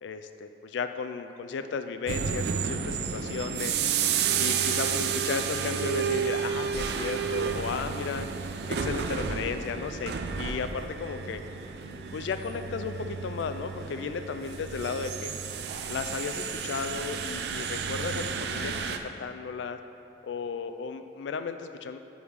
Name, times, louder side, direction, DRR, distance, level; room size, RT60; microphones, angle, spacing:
voice 1, 0.0-3.8 4.4-8.3 8.7-11.4 12.1-15.3 15.9-19.8 20.2-22.0, left 5 dB, 80° left, 9 dB, 0.3 m, -34 dB
sound 1, 2.1-19.0, right 7 dB, 60° right, 0.3 m, -31 dB
5.1 x 4.8 x 5.0 m, 2.8 s
head